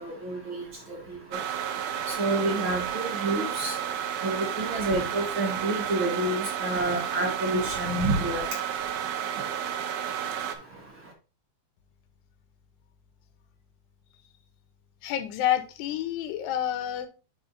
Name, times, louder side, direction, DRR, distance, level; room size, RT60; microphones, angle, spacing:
voice 1, 0.0-11.1, right 2 dB, 65° right, 1.2 m, -30 dB
sound 1, 1.3-10.6, right 9 dB, 90° right, 1.7 m, -32 dB
voice 2, 15.0-17.1, left 11 dB, 90° left, 3.0 m, -28 dB
11.0 x 4.4 x 2.7 m
omnidirectional pair, 4.7 m